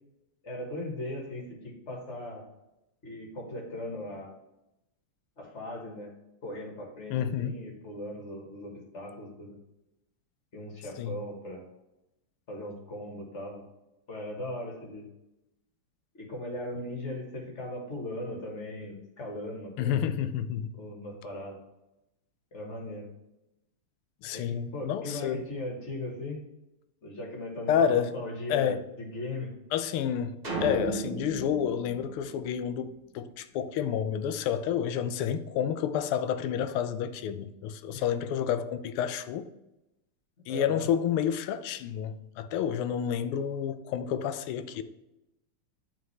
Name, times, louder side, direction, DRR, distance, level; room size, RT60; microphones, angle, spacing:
voice 1, 0.4-1.5 1.9-2.4 3.0-4.3 5.4-6.1 6.4-9.6 10.5-11.7 12.5-13.7 14.1-15.1 16.2-20.0 20.7-21.6 22.5-23.1 24.3-26.4 27.0-29.5 37.9-38.0 40.5-40.9, left 1 dB, 35° left, 1.6 m, -38 dB
voice 2, 7.1-7.6 11.0-11.2 19.8-20.7 24.2-25.4 27.7-28.1 28.5-28.8 29.7-39.5 40.5-44.8, left 9 dB, 85° left, 1.5 m, -29 dB
sound 1, 30.4-32.9, right 3 dB, 25° right, 1.0 m, -35 dB
10.5 x 3.8 x 3.2 m
omnidirectional pair, 2.4 m